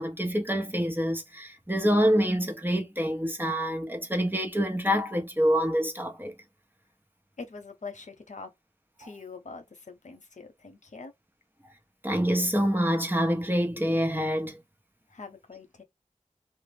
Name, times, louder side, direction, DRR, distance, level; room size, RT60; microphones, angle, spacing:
voice 1, 0.0-6.3 12.0-14.6, equal, 15° right, 0.7 m, -26 dB
voice 2, 7.4-8.5 9.0-11.1 15.1-15.8, left 4 dB, 90° left, 0.7 m, -43 dB
2.2 x 2.0 x 3.2 m
wide cardioid pair, 50°, 12 cm